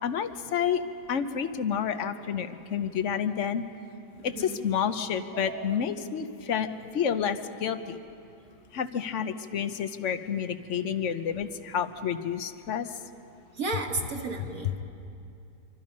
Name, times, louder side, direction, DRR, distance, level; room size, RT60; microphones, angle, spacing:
voice 1, 0.0-0.8 1.1-3.6 4.2-6.7 6.9-8.0 8.7-12.9, left 8 dB, 55° left, 10 dB, 1.1 m, -29 dB
voice 2, 4.2-4.6 5.3-5.8 13.5-14.8, right 3 dB, 55° right, 1 dB, 2.1 m, -34 dB
26.0 x 24.5 x 5.3 m, 2.6 s
omnidirectional pair, 1.8 m